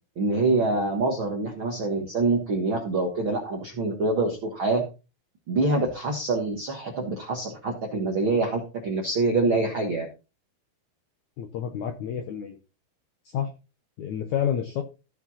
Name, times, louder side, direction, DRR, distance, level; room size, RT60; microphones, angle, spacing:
voice 1, 0.2-4.8 5.5-10.1, right 3 dB, 60° right, 1 dB, 1.3 m, -25 dB
voice 2, 11.4-12.6 13.3-13.5 14.0-14.8, left 9 dB, 75° left, 5 dB, 1.7 m, -29 dB
15.0 x 5.0 x 4.1 m, 0.31 s
omnidirectional pair, 4.6 m